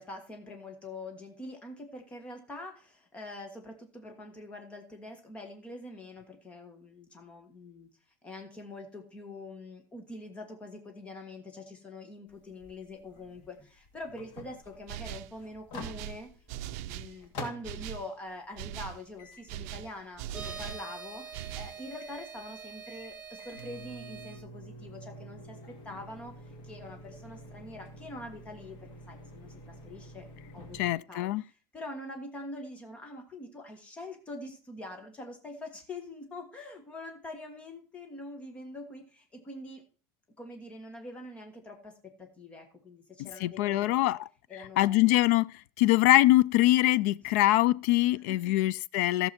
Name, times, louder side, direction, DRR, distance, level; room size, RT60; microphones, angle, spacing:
voice 1, 0.0-7.9 8.2-16.3 16.7-26.3 26.6-30.3 30.5-39.9 40.4-44.1 44.5-45.1 48.3-48.7, left 1 dB, 15° left, 1.5 m, -44 dB
sound 1, 12.3-17.9 18.3-30.9, left 1 dB, 55° left, 2.3 m, -48 dB
sound 2, 14.9-15.4 15.8-17.2 17.6-18.1 18.6-19.0 19.5-20.9 21.3-21.8, right 13 dB, 70° right, 0.5 m, -40 dB
sound 3, 20.3-24.4, right 5 dB, 15° right, 1.3 m, -45 dB
voice 2, 30.8-31.4 43.2-44.2 44.8-45.5 45.8-49.3, left 16 dB, 85° left, 0.4 m, -23 dB
14.0 x 6.8 x 4.3 m
cardioid pair, 175°, 8 cm